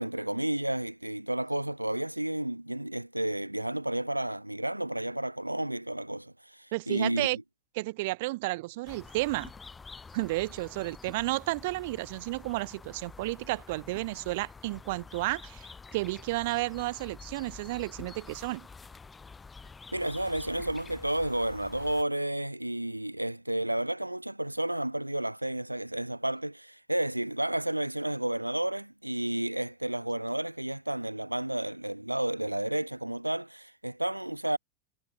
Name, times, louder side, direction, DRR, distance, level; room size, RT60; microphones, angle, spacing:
voice 1, 0.0-7.3 19.9-34.6, right 1 dB, 85° right, 0.7 m, -31 dB
voice 2, 6.7-7.4 7.8-9.5 10.1-15.7 15.9-18.7, right 21 dB, 50° right, 0.3 m, -32 dB
sound 1, 8.8-22.0, left 4 dB, 15° left, 3.5 m, -48 dB
figure-of-eight pair, 90°, 0 cm